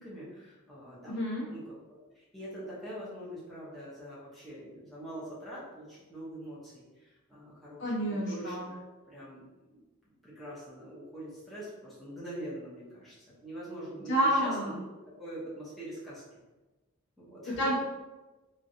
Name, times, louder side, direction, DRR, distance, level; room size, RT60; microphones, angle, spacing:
voice 1, 0.0-1.2 1.5-9.4 9.7-9.8 10.2-13.1 13.4-14.9 15.2-16.4 17.2-17.7, right 1 dB, ahead, -10 dB, 0.9 m, -44 dB
voice 2, 1.1-1.5 7.8-8.7 14.1-14.8 17.6-17.8, equal, 55° left, -5 dB, 0.8 m, -29 dB
3.0 x 2.5 x 2.7 m, 1.1 s
head